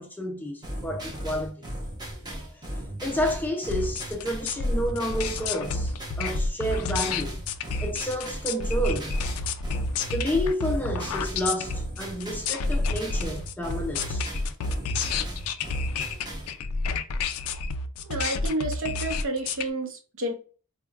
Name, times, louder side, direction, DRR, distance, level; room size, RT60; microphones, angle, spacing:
voice 1, 0.0-1.6 2.3-2.6 3.0-7.4 7.8-9.2 10.1-14.3, equal, 10° left, 0.4 m, -30 dB
sound 1, 0.6-16.6, equal, 20° right, 0.8 m, -36 dB
sound 2, 3.7-19.7, left 3 dB, 80° left, 0.4 m, -30 dB
voice 2, 18.1-20.3, right 1 dB, 60° right, 0.8 m, -30 dB
4.4 x 2.2 x 2.3 m
head